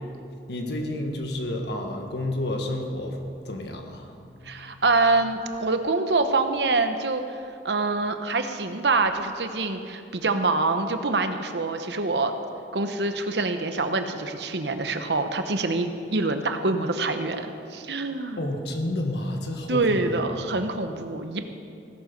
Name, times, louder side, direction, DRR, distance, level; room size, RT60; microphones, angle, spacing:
voice 1, 0.5-4.8 18.4-20.2, left 1 dB, 70° left, 3 dB, 1.7 m, -31 dB
voice 2, 4.4-12.3 12.7-18.4 19.7-21.5, right 3 dB, 75° right, 7 dB, 1.0 m, -25 dB
16.5 x 11.5 x 5.3 m, 2.5 s
head